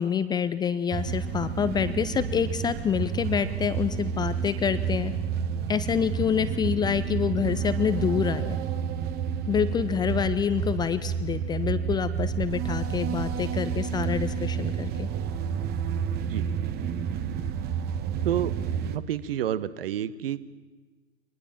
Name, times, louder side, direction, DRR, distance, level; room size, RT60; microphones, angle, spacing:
voice 1, 0.0-5.1 5.7-8.6 9.5-15.1, left 8 dB, 10° left, 13 dB, 0.6 m, -27 dB
sound 1, 0.9-19.0, right 7 dB, 25° right, 1.4 m, -30 dB
voice 2, 18.9-20.4, right 11 dB, 55° right, 16 dB, 1.2 m, -29 dB
24.0 x 20.0 x 7.4 m, 1.3 s
figure-of-eight pair, 105°, 35 cm